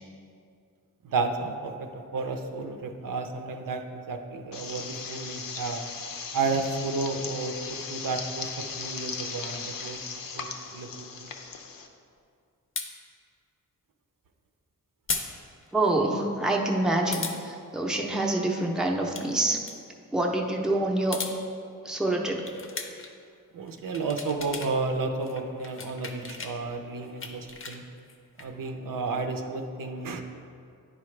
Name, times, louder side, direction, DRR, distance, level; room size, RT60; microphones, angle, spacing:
voice 1, 1.0-5.8 6.3-10.0 10.3-11.3 23.5-27.8 28.4-30.2, right 3 dB, 75° right, 5 dB, 0.6 m, -32 dB
sound 1, 4.5-11.9, left 5 dB, 85° left, 0.7 m, -37 dB
sound 2, 12.8-12.9 15.1-15.3 15.6-15.7 17.1-17.4 18.9-19.3 19.6-19.8 20.9-21.4 22.4-23.1 23.7-24.7 25.0-26.5 26.9-28.5, left 4 dB, 40° left, 0.6 m, -36 dB
voice 2, 15.7-19.6 20.1-21.2 21.8-22.4, right 2 dB, ahead, -1 dB, 0.6 m, -26 dB
10.5 x 4.8 x 3.2 m, 2.3 s
wide cardioid pair, 145°, 33 cm